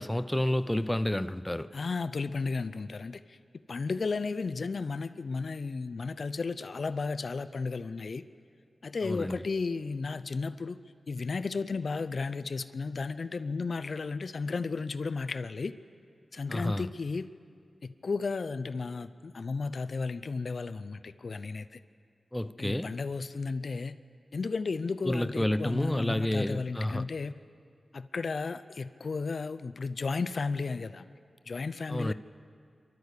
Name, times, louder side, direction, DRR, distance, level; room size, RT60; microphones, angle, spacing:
voice 1, 0.0-1.7 9.0-9.3 16.5-16.9 22.3-22.9 25.0-27.0 31.9-32.1, left 1 dB, 10° left, 0.5 m, -30 dB
voice 2, 1.7-3.4 3.7-8.2 8.8-10.8 11.1-15.7 16.3-17.3 17.8-21.8 22.6-24.0 24.3-27.3 27.9-31.1 31.5-32.1, left 4 dB, 65° left, 0.6 m, -34 dB
27.5 x 12.0 x 8.3 m
wide cardioid pair, 70°, 0 cm